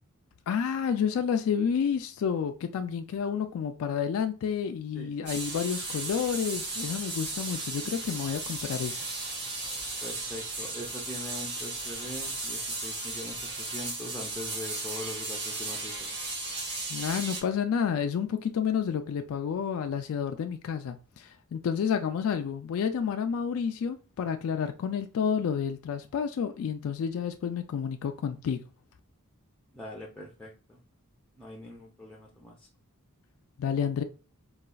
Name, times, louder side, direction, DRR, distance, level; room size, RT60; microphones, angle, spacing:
voice 1, 0.5-9.0 16.9-28.6 33.6-34.0, left 7 dB, 65° left, 0.3 m, -30 dB
sound 1, 5.3-17.4, right 2 dB, 50° right, 1.4 m, -35 dB
voice 2, 10.0-16.2 29.7-30.8 31.4-32.6, left 1 dB, 5° left, 0.4 m, -42 dB
4.0 x 2.3 x 2.2 m
head